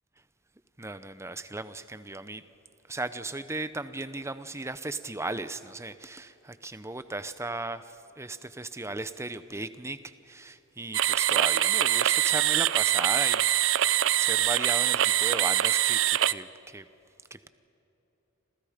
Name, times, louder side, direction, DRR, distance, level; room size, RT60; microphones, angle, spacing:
voice 1, 0.8-2.4 2.9-7.8 8.2-10.0 10.3-16.8 17.3-17.5, right 2 dB, 15° right, 13 dB, 0.8 m, -36 dB
sound 1, 10.9-16.3, right 13 dB, 65° right, 0.5 m, -24 dB
29.5 x 26.5 x 5.1 m, 2.8 s
head